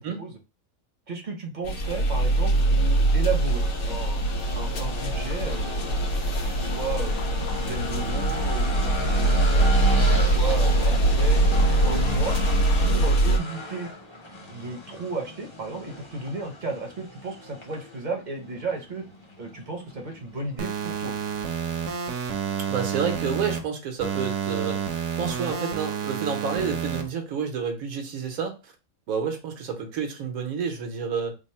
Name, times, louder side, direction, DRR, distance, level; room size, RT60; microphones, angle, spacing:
voice 1, 1.1-4.2 4.6-9.7 10.0-12.4 12.8-13.9 14.5-19.0 19.4-21.1, right 3 dB, 45° right, 3 dB, 0.7 m, -34 dB
sound 1, 1.6-13.4, right 1 dB, 75° left, 1.2 m, -22 dB
sound 2, 1.8-21.7, left 1 dB, 30° left, 0.6 m, -36 dB
sound 3, 20.6-23.6 24.0-27.0, right 7 dB, 65° right, 0.9 m, -29 dB
voice 2, 22.7-28.7 29.1-31.3, right 6 dB, 85° right, 4 dB, 1.3 m, -30 dB
3.5 x 2.0 x 4.2 m, 0.29 s
omnidirectional pair, 1.5 m